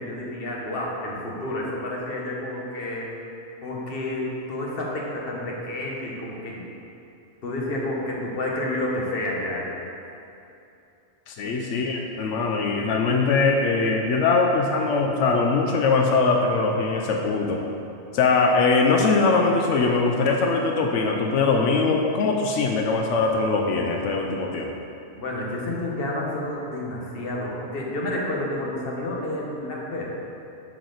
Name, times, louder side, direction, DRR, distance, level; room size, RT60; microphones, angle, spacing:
voice 1, 0.0-3.1 3.6-6.6 7.4-9.8 11.4-11.6 25.2-30.1, left 1 dB, 55° left, -3 dB, 1.3 m, -30 dB
voice 2, 11.3-17.6 18.1-24.7, left 4 dB, 90° left, 2 dB, 1.0 m, -22 dB
11.0 x 4.6 x 3.9 m, 2.8 s
omnidirectional pair, 1.2 m